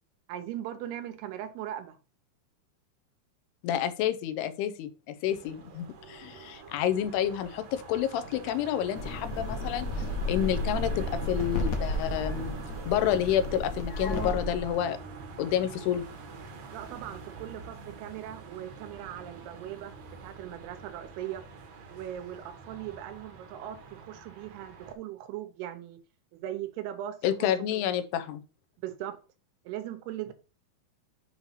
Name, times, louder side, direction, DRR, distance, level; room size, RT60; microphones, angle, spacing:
voice 1, 0.3-2.0 16.7-21.4 21.9-26.0 26.3-27.5 28.8-29.2 29.6-30.3, right 12 dB, 85° right, 2.9 m, -39 dB
voice 2, 3.6-12.5 12.9-15.0 15.4-16.0 27.2-28.4, left 10 dB, 90° left, 2.8 m, -29 dB
sound 1, 5.2-24.9, right 4 dB, 65° right, 1.7 m, -44 dB
sound 2, 9.0-14.8, left 2 dB, 70° left, 1.6 m, -33 dB
7.3 x 3.0 x 5.6 m
omnidirectional pair, 4.5 m